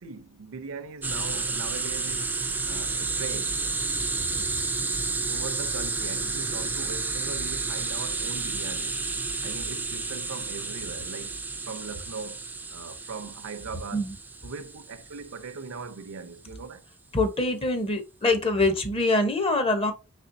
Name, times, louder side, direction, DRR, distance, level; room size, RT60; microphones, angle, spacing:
voice 1, 0.0-2.4 2.7-3.6 5.3-9.0 9.4-11.4 11.6-12.4 12.7-14.1 14.4-16.8, right 4 dB, 65° right, 0.6 m, -40 dB
sound 1, 1.0-15.5, right 3 dB, 10° right, 0.4 m, -31 dB
voice 2, 17.1-19.9, left 2 dB, 25° left, 0.8 m, -24 dB
4.2 x 3.2 x 2.6 m
head